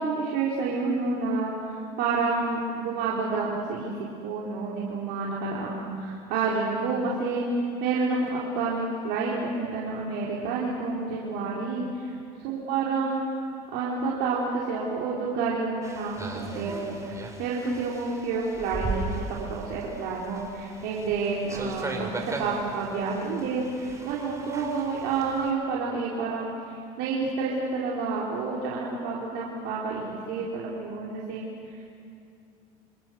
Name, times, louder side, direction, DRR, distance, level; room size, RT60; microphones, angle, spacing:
voice 1, 0.0-12.2 12.4-13.3 13.7-31.9, right 4 dB, 70° right, -5 dB, 4.1 m, -29 dB
sound 1, 15.8-25.5, right 3 dB, 15° right, 4.3 m, -38 dB
27.0 x 27.0 x 6.4 m, 2.5 s
supercardioid pair, 105°, 18 cm